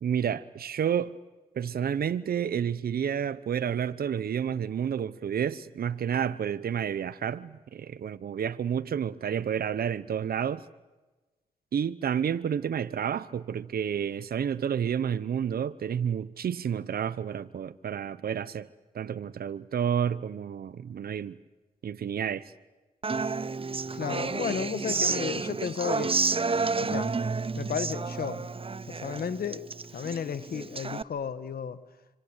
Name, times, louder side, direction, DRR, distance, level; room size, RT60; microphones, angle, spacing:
voice 1, 0.0-1.1 1.5-10.6 11.7-18.7 18.9-21.4 21.8-22.5, right 8 dB, 85° right, 0.9 m, -30 dB
Human voice / Acoustic guitar, 23.0-31.0, right 4 dB, 40° right, 0.8 m, -30 dB
voice 2, 23.9-26.3 26.8-27.1 27.6-28.5 28.9-29.6 29.9-31.8, left 7 dB, 85° left, 1.7 m, -33 dB
26.5 x 26.0 x 8.3 m
cardioid pair, 55°, 15 cm